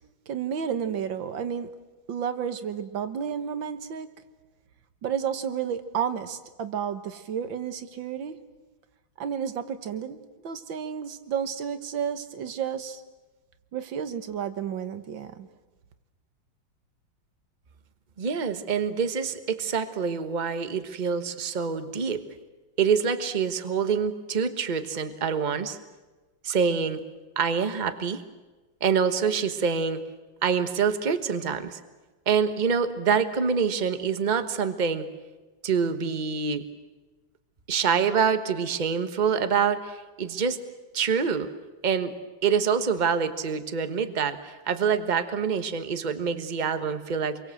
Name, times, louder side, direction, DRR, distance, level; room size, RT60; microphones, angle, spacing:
voice 1, 0.3-1.7 2.1-4.1 5.0-8.4 9.2-10.2 10.4-13.0 13.7-15.5, right 8 dB, 70° right, 10 dB, 2.0 m, -31 dB
voice 2, 18.2-22.2 22.8-25.8 26.4-27.0 27.4-28.2 28.8-30.0 30.4-31.8 32.3-35.1 35.6-36.6 37.7-40.6 40.9-41.5 41.8-42.1 42.4-47.4, right 6 dB, 25° right, 9 dB, 1.1 m, -26 dB
27.5 x 23.0 x 7.8 m, 1.2 s
omnidirectional pair, 2.2 m